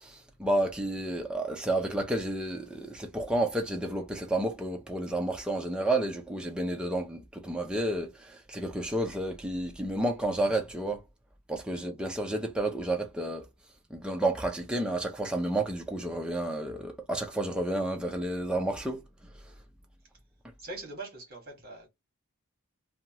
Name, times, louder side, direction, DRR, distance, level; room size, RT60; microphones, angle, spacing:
voice 1, 0.0-11.0 11.5-13.5 13.9-19.0, right 1 dB, 5° right, 0.5 m, -31 dB
voice 2, 20.6-21.9, right 2 dB, 45° right, 1.4 m, -42 dB
2.8 x 2.3 x 2.8 m
head